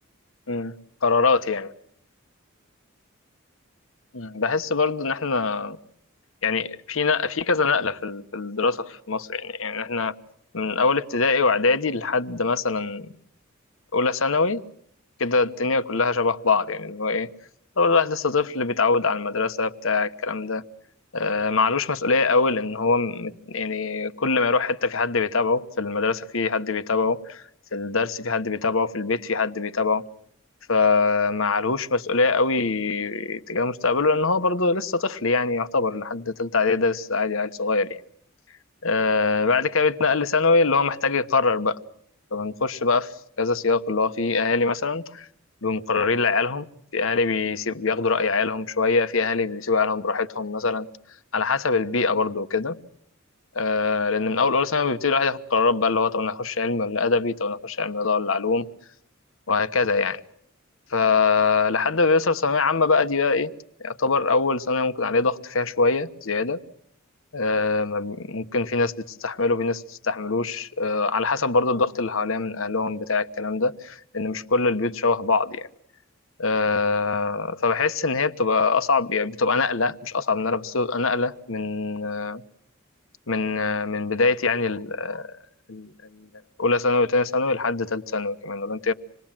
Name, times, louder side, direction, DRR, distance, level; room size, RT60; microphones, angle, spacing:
voice 1, 1.0-1.7 4.1-5.8 6.4-10.1 10.5-13.1 13.9-14.6 15.2-17.3 17.8-20.6 21.1-27.4 27.7-30.0 30.7-38.0 38.8-41.8 42.3-45.3 45.6-46.7 46.9-50.9 51.3-52.8 53.5-58.7 59.5-60.2 60.9-63.5 63.8-66.6 67.3-75.7 76.4-82.4 83.3-85.3 85.7-86.3 86.6-88.9, left 4 dB, 70° left, 1.2 m, -23 dB
27.0 x 20.5 x 7.5 m
head